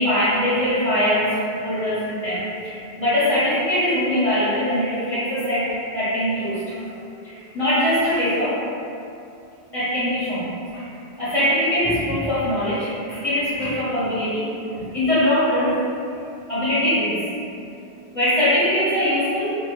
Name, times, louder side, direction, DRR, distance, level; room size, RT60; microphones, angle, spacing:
voice 1, 0.0-5.7 5.9-6.8 7.2-8.8 9.7-10.8 11.2-15.8 16.5-17.2 18.1-19.6, equal, 35° left, -14 dB, 0.8 m, -22 dB
2.1 x 2.1 x 2.9 m, 2.6 s
omnidirectional pair, 1.1 m